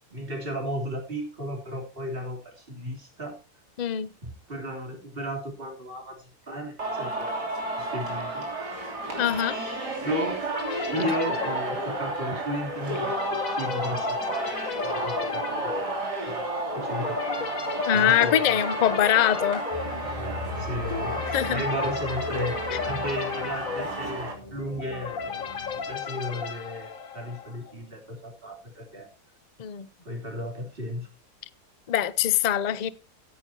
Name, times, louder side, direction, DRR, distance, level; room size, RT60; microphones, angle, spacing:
voice 1, 0.1-3.4 4.2-8.5 10.0-10.4 10.9-15.9 16.2-16.5 16.7-17.2 17.9-18.6 20.6-25.2 25.9-29.1 30.1-31.1, equal, 35° right, 3.4 m, -34 dB
voice 2, 3.8-4.1 9.2-9.6 17.9-19.6 21.3-21.6 29.6-29.9 31.9-32.9, left 10 dB, 75° left, 0.4 m, -23 dB
Singing, 6.8-24.3, right 2 dB, 85° right, 3.7 m, -32 dB
sound 1, 10.5-27.7, left 6 dB, 60° left, 1.6 m, -34 dB
sound 2, 19.7-26.0, left 1 dB, 20° left, 3.1 m, -39 dB
16.5 x 9.2 x 2.8 m
omnidirectional pair, 1.7 m